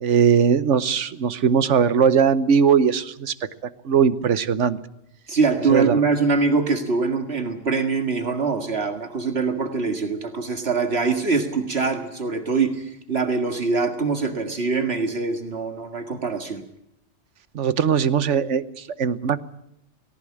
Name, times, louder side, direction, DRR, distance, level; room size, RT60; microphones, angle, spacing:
voice 1, 0.0-3.3 3.8-4.8 5.7-5.9 17.5-19.4, right 7 dB, 90° right, 15 dB, 1.3 m, -19 dB
voice 2, 5.3-16.6, right 4 dB, 60° right, 6 dB, 2.1 m, -23 dB
18.5 x 18.0 x 8.6 m, 0.80 s
omnidirectional pair, 1.2 m